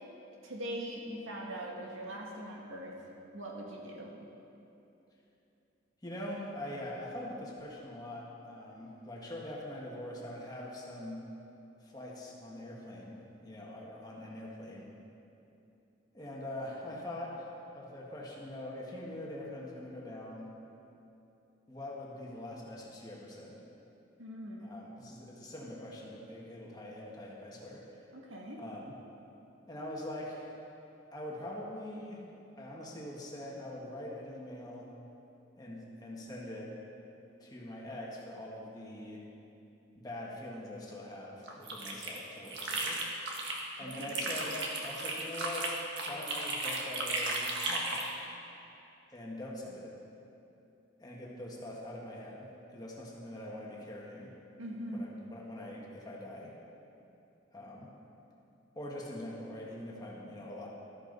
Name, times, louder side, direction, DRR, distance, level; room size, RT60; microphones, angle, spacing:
voice 1, 0.4-3.0 3.3-4.1 24.2-24.7 28.1-28.6 43.8-44.2 54.6-55.1, right 1 dB, 90° right, -2 dB, 2.1 m, -41 dB
voice 2, 6.0-11.2 11.8-14.9 16.1-20.5 21.7-23.6 24.6-28.0 28.6-29.0 29.7-30.5 31.1-32.2 32.5-34.9 35.6-36.8 37.4-39.3 39.9-43.0 43.8-45.7 46.1-48.1 49.1-50.0 51.0-54.3 54.9-56.5 57.5-57.9 58.7-60.7, left 1 dB, 20° left, -4 dB, 1.7 m, -43 dB
sound 1, 41.5-43.6 43.9-48.1, right 2 dB, 60° right, 1.7 m, -35 dB
14.5 x 13.0 x 4.1 m, 2.8 s
head